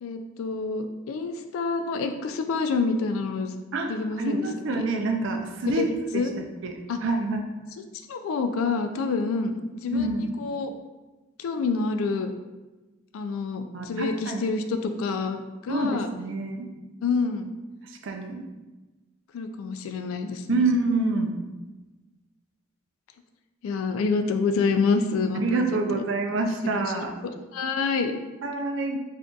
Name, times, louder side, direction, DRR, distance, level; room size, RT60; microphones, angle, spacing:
voice 1, 0.0-3.5 3.9-4.5 4.7-4.8 5.7-5.9 6.1-6.3 6.9-7.0 8.1-10.7 11.4-12.3 13.1-16.1 17.0-17.5 19.3-20.6 23.6-25.6 25.9-26.0 26.6-27.1 27.5-28.1, left 4 dB, 80° left, 8 dB, 0.3 m, -27 dB
voice 2, 4.2-5.9 6.1-6.2 6.6-7.4 9.9-10.3 13.7-14.5 15.7-16.7 17.8-18.4 20.5-21.4 25.3-27.1 28.4-29.0, right 2 dB, 65° right, 4 dB, 0.4 m, -27 dB
3.7 x 2.5 x 2.3 m, 1.2 s
head